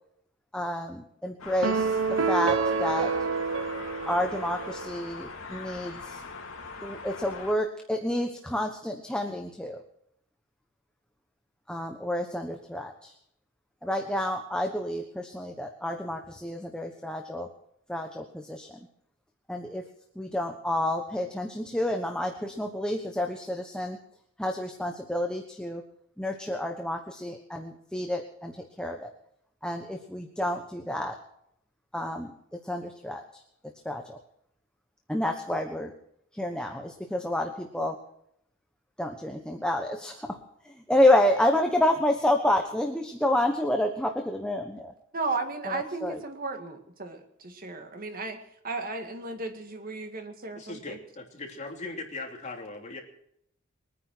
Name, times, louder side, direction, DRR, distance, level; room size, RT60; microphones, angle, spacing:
voice 1, 0.5-3.2 4.1-6.2 6.8-9.8 11.7-13.1 13.8-17.5 17.9-18.9 19.5-19.9 20.1-24.0 24.4-25.8 26.2-29.1 29.6-31.2 31.9-33.4 33.8-34.2 35.1-35.9 36.3-38.0 39.0-40.4 40.6-44.9 45.6-46.2, left 1 dB, 5° left, 3 dB, 1.2 m, -29 dB
sound 1, 1.4-7.5, left 4 dB, 75° left, 2.6 m, -41 dB
sound 2, 1.6-5.1, right 5 dB, 70° right, 0.9 m, -28 dB
voice 2, 45.1-48.4 48.6-51.0, right 3 dB, 45° right, 5 dB, 2.0 m, -35 dB
voice 3, 50.5-53.0, left 3 dB, 35° left, 1 dB, 3.2 m, -39 dB
22.5 x 9.8 x 6.2 m, 0.73 s
head